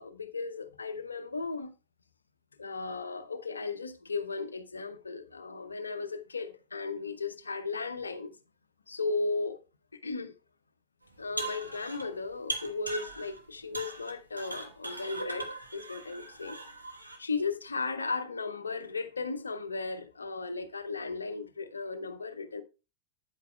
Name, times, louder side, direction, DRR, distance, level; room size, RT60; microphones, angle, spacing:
voice 1, 0.0-1.7 2.6-8.3 8.9-9.6 10.0-10.3 11.2-16.6 17.2-22.6, left 4 dB, 75° left, 0.6 m, -36 dB
sound 1, 11.1-12.1 12.5-13.4 13.7-17.2, right 2 dB, 85° right, 1.4 m, -39 dB
9.3 x 8.2 x 2.2 m
figure-of-eight pair, 90°, 0 cm